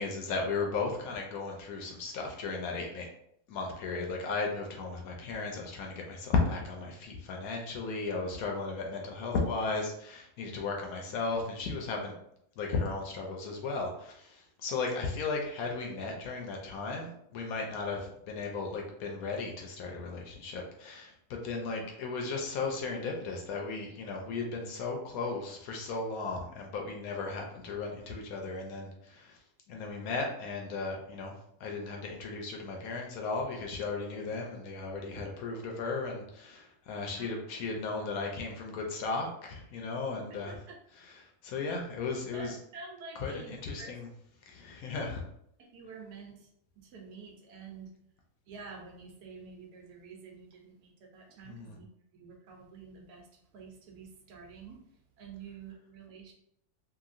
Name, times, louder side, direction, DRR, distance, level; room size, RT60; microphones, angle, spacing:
voice 1, 0.0-3.1 3.5-12.1 12.6-29.4 29.7-31.3 31.6-40.6 41.0-42.6 43.2-44.1 44.5-45.2 51.4-51.8, left 4 dB, 70° left, 1 dB, 0.9 m, -35 dB
voice 2, 37.1-37.4 40.3-40.8 42.3-44.0 45.6-46.5 46.8-47.9 48.5-51.8 52.1-54.8 55.2-56.3, right 4 dB, 75° right, 1 dB, 1.2 m, -49 dB
2.9 x 2.6 x 2.4 m, 0.73 s
omnidirectional pair, 1.7 m